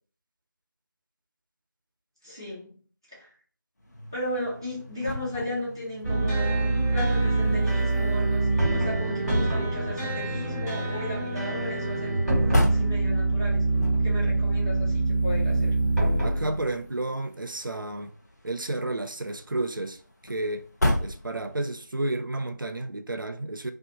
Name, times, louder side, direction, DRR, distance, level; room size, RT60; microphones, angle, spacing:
voice 1, 2.2-2.8 3.1-3.3 4.1-15.7, left 1 dB, 15° right, 0.5 m, -35 dB
sound 1, 3.8-21.9, left 1 dB, 55° left, 0.7 m, -36 dB
sound 2, 6.0-16.8, right 2 dB, 5° left, 1.3 m, -25 dB
voice 2, 16.2-18.1 18.4-20.6 21.0-23.7, right 2 dB, 90° right, 0.5 m, -31 dB
2.5 x 2.4 x 2.7 m
figure-of-eight pair, 170°, 11 cm